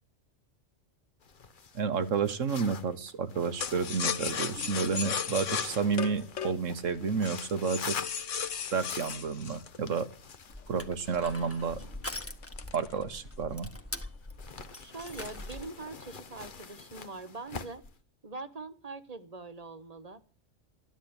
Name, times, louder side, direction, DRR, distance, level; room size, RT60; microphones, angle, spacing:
sound 1, 1.2-13.9 14.4-18.0, left 5 dB, 45° left, 1.1 m, -47 dB
voice 1, 1.7-8.0 8.7-10.1 10.7-11.8 12.7-13.7, right 5 dB, 90° right, 12 dB, 1.6 m, -30 dB
sound 2, 3.6-10.5 11.1-13.5 13.9-14.0 14.3-14.6 15.1-15.8 16.1-16.6, left 7 dB, 80° left, 1.4 m, -36 dB
Crushing, 10.5-15.7, left 1 dB, 10° left, 1.5 m, -43 dB
voice 2, 14.8-17.8 18.2-20.2, right 3 dB, 30° right, 12 dB, 1.4 m, -43 dB
14.5 x 11.0 x 8.9 m, 0.40 s
omnidirectional pair, 1.3 m